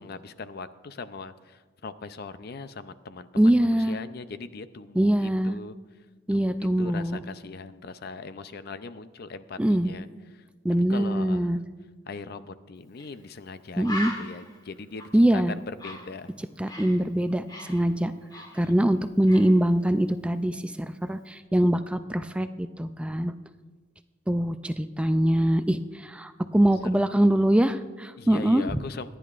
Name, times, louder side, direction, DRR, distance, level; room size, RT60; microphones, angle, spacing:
voice 1, 0.0-5.8 6.3-10.1 10.9-11.5 12.1-16.3 28.2-29.1, left 4 dB, 55° left, 12 dB, 0.5 m, -40 dB
voice 2, 3.4-4.0 4.9-5.6 6.3-7.2 9.6-9.9 10.6-11.6 13.8-14.1 15.1-15.5 16.6-18.1 18.5-23.3 24.3-28.8, right 1 dB, 5° right, 10 dB, 0.3 m, -23 dB
Bird, 13.0-13.1 13.4-13.5 13.8-17.0 17.3-19.0 19.3-19.6, left 1 dB, 20° left, 1.6 m, -39 dB
25.5 x 10.0 x 2.5 m, 1.4 s
head